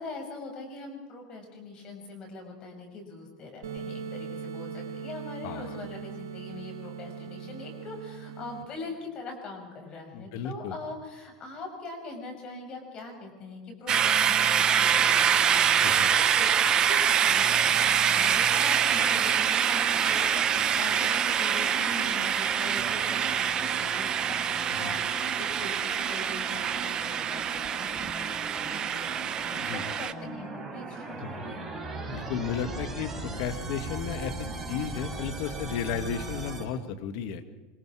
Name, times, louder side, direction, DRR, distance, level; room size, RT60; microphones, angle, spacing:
voice 1, 0.0-16.4 16.8-25.7 26.1-31.6 34.4-34.9, left 2 dB, 40° left, 3 dB, 6.1 m, -42 dB
sound 1, 3.6-8.6, right 6 dB, 75° right, 1.7 m, -39 dB
voice 2, 5.4-5.8 10.1-10.8 15.8-16.1 24.7-25.0 29.6-29.9 31.2-31.4 32.1-37.4, left 7 dB, 65° left, 9 dB, 1.6 m, -34 dB
sound 2, 13.9-30.1, right 8 dB, 35° right, 1.0 m, -25 dB
sound 3, 18.5-36.6, right 3 dB, 15° right, 4.2 m, -40 dB
24.5 x 23.0 x 4.8 m, 1.3 s
hypercardioid pair, 95°, 2 cm